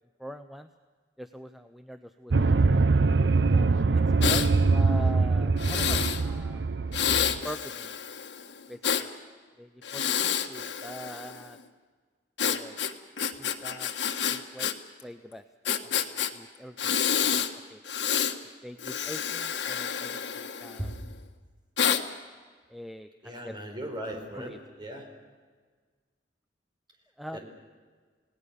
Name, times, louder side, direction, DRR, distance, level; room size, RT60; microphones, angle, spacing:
voice 1, 0.2-0.7 1.2-2.8 3.5-6.6 7.4-7.9 8.7-9.1 9.6-11.6 12.4-12.8 13.4-13.9 14.3-14.8 15.0-15.4 15.8-15.9 16.3-17.8 18.6-20.9 22.7-23.6 24.3-24.6 27.2-27.4, equal, ahead, 8 dB, 0.6 m, -43 dB
sound 1, 2.3-7.4, right 3 dB, 65° right, 0.6 m, -23 dB
Breathing, 4.2-4.5 5.6-6.2 6.9-9.0 9.8-11.4 12.4-14.7 15.0-15.1 15.6-16.3 16.8-17.5 17.8-18.3 18.8-21.0 21.8-22.0, left 8 dB, 85° left, 1.5 m, -28 dB
voice 2, 23.2-25.1 27.3-27.4, right 1 dB, 25° right, 3 dB, 4.6 m, -37 dB
29.0 x 18.5 x 6.9 m, 1.5 s
head